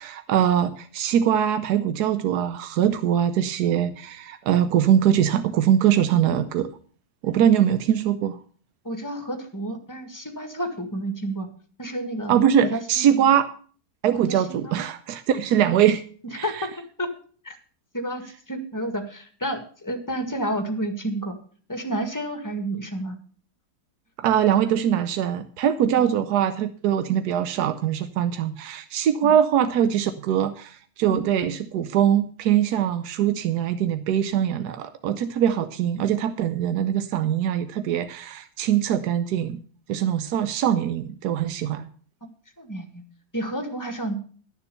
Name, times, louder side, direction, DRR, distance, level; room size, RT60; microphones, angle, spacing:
voice 1, 0.0-6.7 7.2-8.4 12.3-13.5 14.0-16.0 16.3-16.7 24.2-39.6 39.9-41.9, right 9 dB, 80° right, 11 dB, 1.3 m, -22 dB
voice 2, 8.8-11.5 11.8-12.3 12.6-13.3 14.3-14.8 16.4-16.7 17.0-17.1 17.4-17.6 17.9-21.3 21.7-23.2 26.0-26.2 29.2-29.3 31.0-31.2 42.2-42.3 42.6-43.0 43.3-44.1, right 1 dB, 10° left, 6 dB, 1.7 m, -30 dB
12.5 x 7.0 x 6.7 m, 0.43 s
omnidirectional pair, 1.7 m